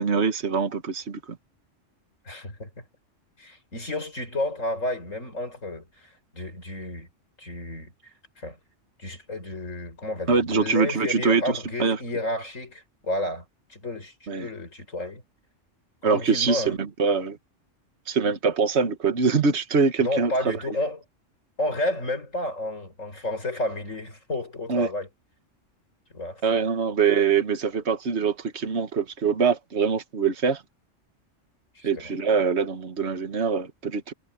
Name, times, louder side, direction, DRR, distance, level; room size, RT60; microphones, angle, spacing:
voice 1, 0.0-1.4 10.3-11.4 11.8-12.0 14.3-14.5 16.0-17.4 18.1-20.3 24.7-24.9 26.4-30.6 31.8-34.1, right 5 dB, 60° right, 1.8 m, -23 dB
voice 2, 2.2-2.8 3.4-7.1 7.4-7.9 8.4-8.6 9.0-13.4 13.7-15.2 16.0-16.8 20.0-21.0 21.6-25.1 26.1-26.4 31.7-32.1, left 1 dB, 85° left, 6.1 m, -31 dB
omnidirectional pair, 1.3 m